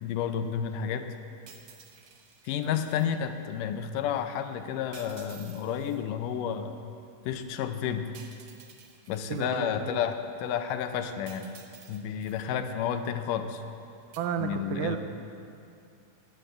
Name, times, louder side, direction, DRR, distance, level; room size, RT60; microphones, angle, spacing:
voice 1, 0.0-1.1 2.4-6.8 7.3-8.1 9.1-11.5 11.9-13.6 14.4-15.0, left 8 dB, 85° left, 8 dB, 2.3 m, -31 dB
sound 1, 1.5-3.1 4.9-6.0 8.1-9.4 11.3-12.5 14.1-14.2, right 6 dB, 70° right, 1.4 m, -52 dB
voice 2, 9.3-10.0 14.2-15.0, right 9 dB, 85° right, 8 dB, 2.2 m, -32 dB
11.0 x 10.0 x 7.8 m, 2.5 s
omnidirectional pair, 3.7 m